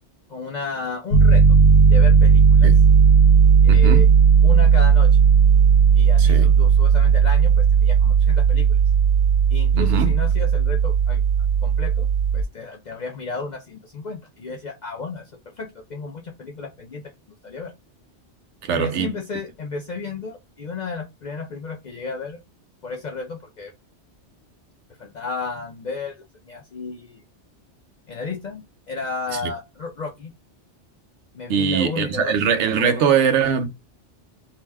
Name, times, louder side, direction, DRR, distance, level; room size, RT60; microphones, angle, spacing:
voice 1, 0.3-1.4 1.9-2.7 3.6-4.1 4.4-5.2 6.0-8.8 9.5-11.2 11.6-12.1 12.3-15.2 15.6-17.0 17.4-17.7 18.7-22.4 22.8-23.7 25.0-27.2 28.1-30.3 31.3-32.3 32.6-33.2, left 4 dB, 60° left, 0.5 m, -33 dB
Piano, 1.1-12.4, right 6 dB, 80° left, 1.0 m, -15 dB
voice 2, 3.7-4.1 6.2-6.5 9.8-10.1 18.6-19.1 29.3-29.5 31.5-33.7, right 7 dB, 75° right, 0.9 m, -21 dB
2.7 x 2.1 x 3.2 m
omnidirectional pair, 1.2 m